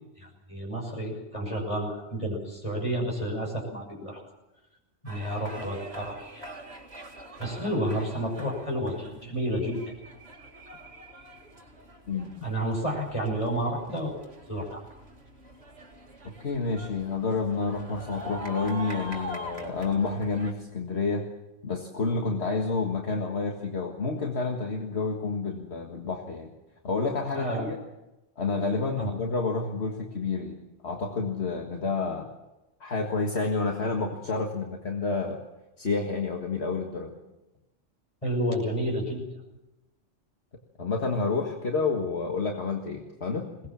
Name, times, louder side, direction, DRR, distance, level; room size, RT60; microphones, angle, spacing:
voice 1, 0.2-4.2 5.0-6.5 7.4-9.9 12.4-14.2 14.5-14.8 27.3-27.7 29.0-29.1 38.2-39.2, right 1 dB, 25° left, 1 dB, 6.2 m, -30 dB
sound 1, 5.1-20.5, equal, 60° right, 2.5 m, -43 dB
voice 2, 12.1-12.5 16.4-21.3 21.6-26.5 26.8-27.8 28.4-32.3 32.8-35.4 35.8-37.1 40.8-43.5, left 4 dB, 60° left, 2 dB, 2.0 m, -29 dB
21.5 x 19.0 x 7.3 m, 1.0 s
omnidirectional pair, 1.3 m